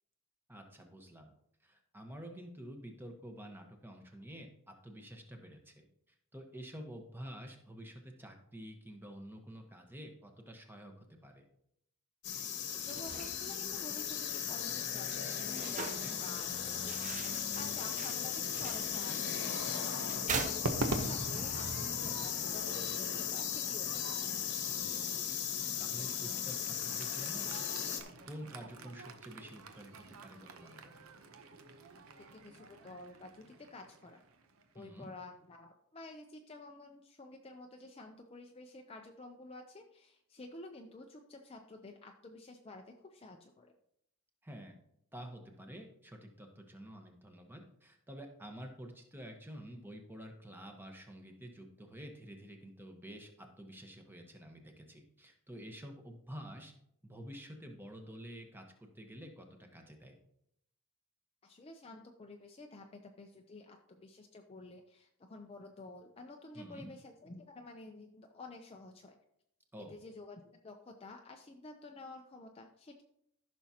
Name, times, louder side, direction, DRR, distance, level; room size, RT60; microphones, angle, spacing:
voice 1, 0.5-1.3 1.6-5.8 6.3-11.5 15.8-16.2 24.6-25.2 25.8-31.0 34.7-35.1 44.4-44.7 45.1-56.7 57.0-60.1 66.5-66.9 69.7-70.0, equal, 10° right, 3 dB, 1.1 m, -49 dB
sound 1, 12.2-28.0, left 8 dB, 55° left, 1.1 m, -37 dB
voice 2, 12.7-19.6 20.0-24.0 32.2-34.2 34.7-43.7 61.4-69.2 69.8-73.0, left 2 dB, 25° left, 3 dB, 0.5 m, -51 dB
sound 2, 12.7-21.3, right 5 dB, 35° right, 0.6 m, -44 dB
Crowd / Fireworks, 20.6-35.0, right 2 dB, 70° right, 0.8 m, -44 dB
14.0 x 6.2 x 2.9 m, 0.75 s
head